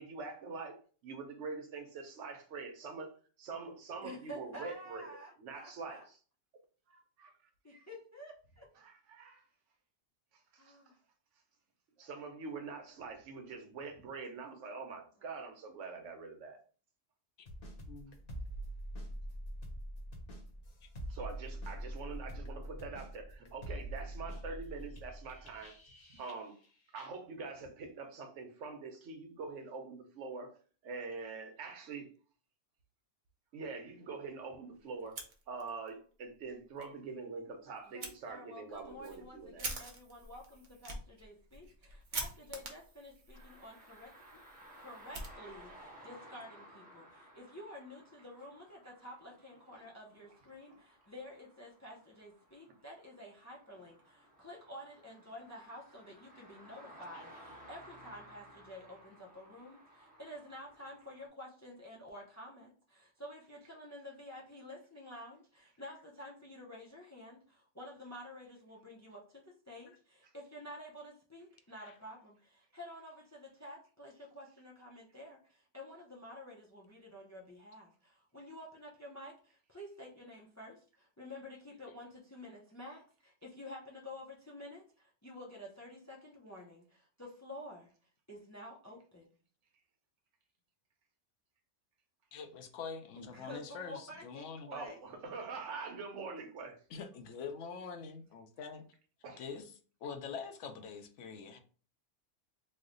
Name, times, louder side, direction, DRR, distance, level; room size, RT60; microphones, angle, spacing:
voice 1, 0.0-6.1 8.8-9.4 10.5-10.8 12.0-16.6 21.1-25.7 26.2-26.5 26.9-30.5 30.8-32.1 33.5-35.2 35.5-39.6 94.7-96.8 99.2-99.4, right 4 dB, 80° right, 1.1 m, -44 dB
voice 2, 4.0-6.0 7.6-8.7 10.6-11.0 37.8-44.4 44.8-87.9 88.3-89.3 93.2-95.0, left 1 dB, 30° left, 0.3 m, -50 dB
sound 1, 17.5-26.7 26.9-27.1, right 1 dB, 55° left, 0.9 m, -44 dB
Fire, 35.0-35.9 36.3-36.4 36.8-36.9 38.0-38.1 38.7-45.9, right 3 dB, 45° right, 0.8 m, -46 dB
sound 2, 43.3-61.3, right 1 dB, 10° right, 0.9 m, -57 dB
voice 3, 92.3-94.7 96.9-98.9 99.4-99.7 100.0-101.6, left 5 dB, 80° left, 0.9 m, -44 dB
3.1 x 2.1 x 3.7 m
omnidirectional pair, 1.2 m